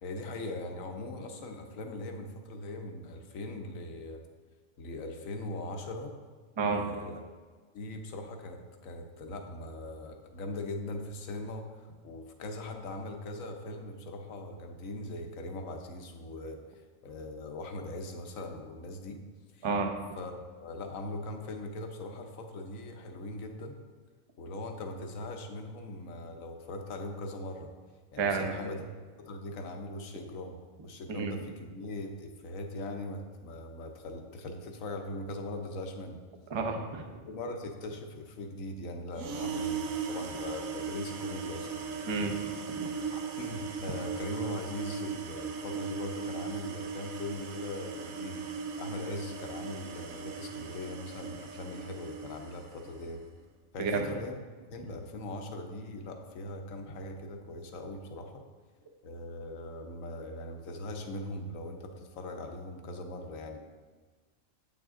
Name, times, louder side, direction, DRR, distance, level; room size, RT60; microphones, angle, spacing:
voice 1, 0.0-4.2 4.8-6.1 6.7-7.2 7.7-16.6 17.0-19.2 19.5-19.7 20.2-20.3 20.6-23.8 24.4-27.7 28.1-28.8 29.2-36.2 37.0-42.0 43.1-48.5 48.8-53.2 53.7-54.4 54.7-58.4 59.0-63.6, left 2 dB, 80° left, 4 dB, 1.2 m, -40 dB
voice 2, 19.6-19.9 28.2-28.8 31.1-31.3 36.5-37.0 42.1-42.4 42.7-42.9 53.8-54.1, right 4 dB, 35° right, 3 dB, 0.5 m, -30 dB
sound 1, 39.1-53.1, right 6 dB, 90° right, 1.2 m, -38 dB
8.3 x 6.0 x 3.7 m, 1.4 s
omnidirectional pair, 1.4 m